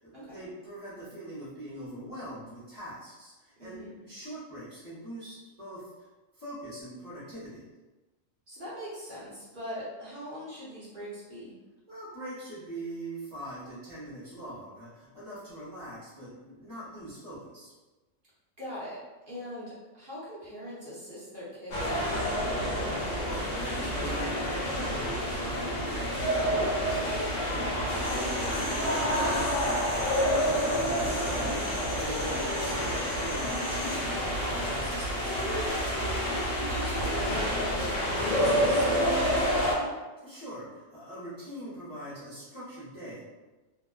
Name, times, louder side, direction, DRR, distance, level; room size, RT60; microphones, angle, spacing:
voice 1, 0.0-6.1 6.3-7.7 11.9-17.7 23.2-30.8 31.3-35.5 40.2-43.2, right 1 dB, 20° left, -11 dB, 0.6 m, -43 dB
voice 2, 3.6-4.0 8.5-11.6 18.6-19.0 19.3-22.9 27.7-28.0 31.3-31.8 36.5-40.0, equal, 50° right, -9 dB, 0.9 m, -41 dB
sound 1, 21.7-39.7, equal, 65° left, 1.1 m, -28 dB
sound 2, 28.0-34.0, left 1 dB, 90° left, 1.0 m, -43 dB
2.7 x 2.0 x 2.3 m, 1.2 s
omnidirectional pair, 1.3 m